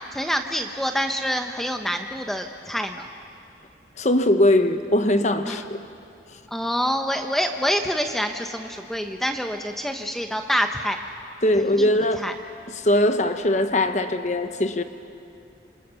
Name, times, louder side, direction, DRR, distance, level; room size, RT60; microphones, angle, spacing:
voice 1, 0.1-3.1 5.5-5.6 6.5-11.0 11.8-11.9 12.2-12.3, equal, ahead, 4 dB, 0.8 m, -26 dB
voice 2, 4.0-5.8 11.4-12.3 12.7-14.8, left 1 dB, 40° left, 8 dB, 1.1 m, -21 dB
27.5 x 26.0 x 7.0 m, 2.5 s
head